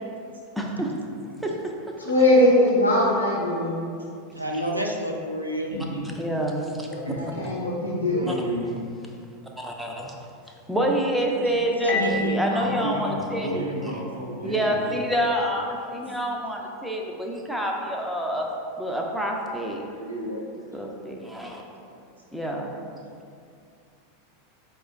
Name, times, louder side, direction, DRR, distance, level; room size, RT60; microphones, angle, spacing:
voice 1, 0.6-0.9 1.4-1.7 4.5-4.7 6.2-6.9 8.3-8.4 9.6-10.1 10.7-13.9 14.4-18.5 18.8-19.8 20.7-21.6 22.3-22.8, right 1 dB, ahead, -1 dB, 0.5 m, -27 dB
voice 2, 2.0-3.8 6.8-8.2, left 1 dB, 75° left, -4 dB, 0.6 m, -21 dB
voice 3, 4.3-5.7 11.8-12.6, equal, 90° right, 1 dB, 0.3 m, -29 dB
voice 4, 5.7-6.1 6.9-7.2 8.1-8.8 12.5-14.9 19.9-20.4 21.8-22.0, right 1 dB, 75° right, -3 dB, 0.8 m, -33 dB
Marimba xylophone, 11.9-14.5, left 2 dB, 35° left, 0.7 m, -31 dB
4.9 x 2.3 x 3.6 m, 2.4 s
figure-of-eight pair, 85°, 0 cm